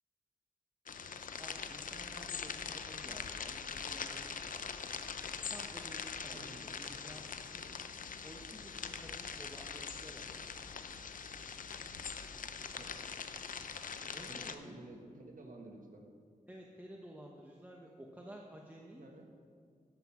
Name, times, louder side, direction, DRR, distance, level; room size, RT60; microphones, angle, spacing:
sound 1, 0.9-14.5, left 6 dB, 70° left, 0.6 m, -43 dB
voice 1, 1.4-5.0 5.5-7.8 8.2-10.4 14.1-14.8 16.5-19.0, right 1 dB, 10° right, -1 dB, 0.9 m, -53 dB
sound 2, 1.5-12.9, left 1 dB, 90° left, 1.4 m, -60 dB
voice 2, 6.3-6.6 12.8-13.0 14.3-16.1 19.0-19.3, right 2 dB, 65° right, 2 dB, 1.5 m, -51 dB
12.0 x 5.8 x 6.0 m, 2.2 s
cardioid pair, 70°, 15 cm